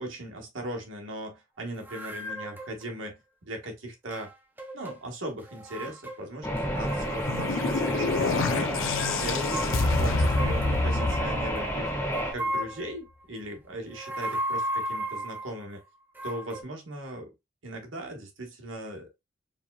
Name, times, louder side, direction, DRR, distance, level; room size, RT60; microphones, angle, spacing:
voice 1, 0.0-4.3 4.7-11.9 12.3-15.8 16.2-17.3 17.6-19.1, right 1 dB, 80° right, 1.2 m, -39 dB
sound 1, 1.8-2.9 4.0-5.0 5.3-6.3 6.6-7.2 7.9-8.4 8.9-11.7 12.1-13.0 13.8-15.6 16.1-16.6, right 1 dB, 10° right, 0.9 m, -35 dB
sound 2, 6.4-12.3, equal, 10° left, 1.3 m, -30 dB
sound 3, 6.9-12.2, left 3 dB, 90° left, 0.5 m, -28 dB
4.6 x 3.5 x 2.2 m
head